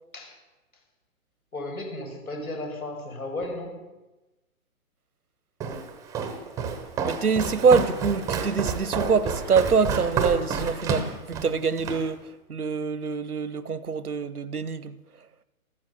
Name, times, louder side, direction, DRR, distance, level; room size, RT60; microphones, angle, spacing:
voice 1, 1.5-3.8, left 2 dB, 75° left, 5.7 m, -34 dB
Walk footsteps, 5.6-12.1, right 5 dB, 10° right, 0.8 m, -29 dB
voice 2, 7.0-12.2 12.5-14.9, right 5 dB, 85° right, 1.0 m, -24 dB
14.5 x 13.5 x 6.6 m
figure-of-eight pair, 130°, 43 cm